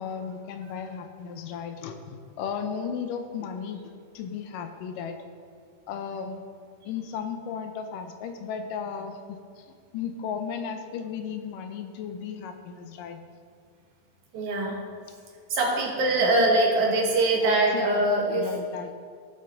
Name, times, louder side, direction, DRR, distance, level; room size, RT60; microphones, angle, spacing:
voice 1, 0.0-3.8 4.1-5.2 5.9-6.4 6.9-9.4 9.9-13.2 17.3-18.9, left 6 dB, 80° left, 7 dB, 2.3 m, -35 dB
voice 2, 14.3-14.8 15.5-18.5, right 2 dB, 65° right, -1 dB, 2.7 m, -23 dB
15.0 x 7.0 x 3.9 m, 2.1 s
omnidirectional pair, 3.8 m